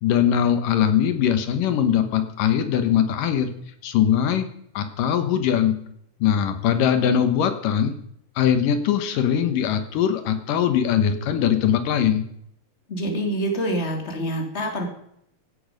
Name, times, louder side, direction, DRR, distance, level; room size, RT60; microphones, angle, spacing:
voice 1, 0.0-3.5 3.8-4.5 4.8-5.7 6.2-7.9 8.4-12.2, left 9 dB, 80° left, 9 dB, 2.8 m, -21 dB
voice 2, 12.9-14.9, right 1 dB, 20° left, 3 dB, 2.8 m, -26 dB
16.0 x 12.0 x 5.2 m, 0.71 s
omnidirectional pair, 3.8 m